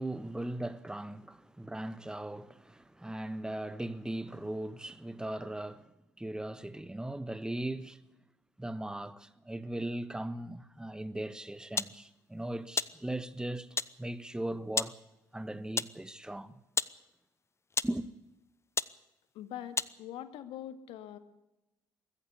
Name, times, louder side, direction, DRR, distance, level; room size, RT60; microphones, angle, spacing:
voice 1, 0.0-8.0 8.6-15.0 15.3-16.6 17.8-18.1, right 1 dB, 10° right, 1.4 m, -38 dB
sound 1, 11.8-12.0 12.8-13.0 13.8-14.0 14.8-15.0 15.8-16.0 16.8-17.0 17.7-18.0 18.8-19.0 19.8-19.9, left 4 dB, 30° left, 0.9 m, -32 dB
voice 2, 19.3-21.2, left 11 dB, 70° left, 2.1 m, -43 dB
22.0 x 15.0 x 8.4 m
hypercardioid pair, 55°, 10 cm